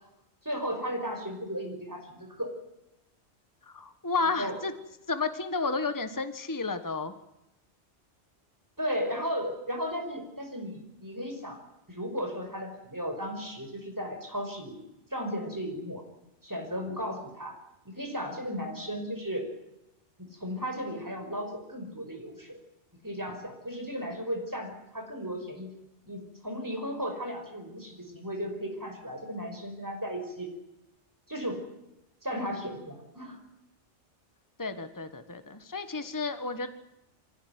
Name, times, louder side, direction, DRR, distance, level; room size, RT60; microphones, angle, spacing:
voice 1, 0.4-2.5 4.4-4.6 8.8-11.6 11.9-14.8 15.1-16.0 16.4-17.6 17.9-19.5 20.2-22.6 23.0-25.7 26.1-30.5 31.3-31.6 32.2-33.4, equal, 15° right, 3 dB, 5.5 m, -35 dB
voice 2, 3.6-4.7 5.1-7.1 34.6-36.7, left 4 dB, 15° left, 9 dB, 1.4 m, -32 dB
24.0 x 17.0 x 9.5 m, 0.91 s
omnidirectional pair, 1.2 m